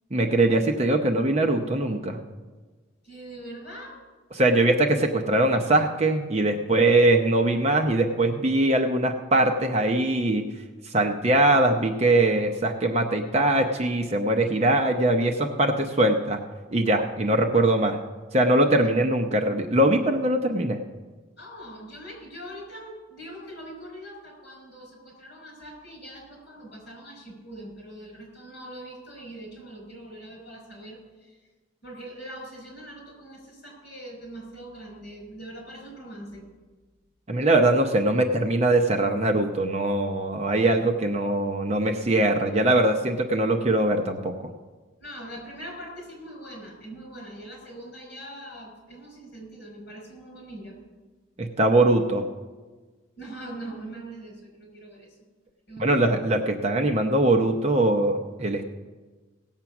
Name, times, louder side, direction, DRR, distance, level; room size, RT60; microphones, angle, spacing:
voice 1, 0.1-2.2 4.4-10.5 10.8-16.4 16.7-18.0 18.3-20.8 37.3-44.3 51.4-52.2 55.8-58.7, right 1 dB, 30° right, 4 dB, 0.7 m, -22 dB
voice 2, 3.0-4.0 18.8-18.9 21.4-31.4 31.8-36.5 45.0-50.8 53.2-55.2 55.7-56.1, right 1 dB, 50° left, 0 dB, 5.1 m, -42 dB
17.0 x 7.5 x 5.9 m, 1.3 s
head